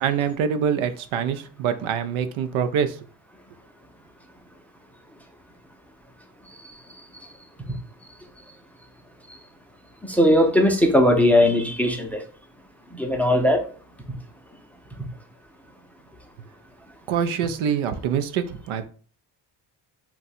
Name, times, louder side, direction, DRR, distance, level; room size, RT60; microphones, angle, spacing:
voice 1, 0.0-3.0 17.1-18.8, right 7 dB, 85° right, 10 dB, 0.5 m, -25 dB
voice 2, 10.0-12.2 12.9-13.6, left 1 dB, 5° left, 2 dB, 0.5 m, -18 dB
2.6 x 2.3 x 4.0 m, 0.41 s
cardioid pair, 100°, 47 cm